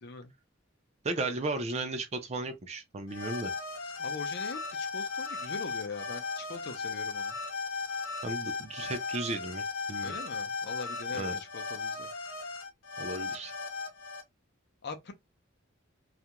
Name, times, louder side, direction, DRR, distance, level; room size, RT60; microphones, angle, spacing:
voice 1, 0.0-0.3 4.0-7.4 10.0-12.1 14.8-15.1, left 4 dB, 60° left, 0.5 m, -42 dB
voice 2, 1.0-3.5 8.2-10.1 11.1-11.4 13.0-13.5, right 2 dB, 35° right, 0.5 m, -35 dB
North Egypt, 3.1-14.2, left 4 dB, 90° left, 0.8 m, -36 dB
2.4 x 2.1 x 2.9 m
head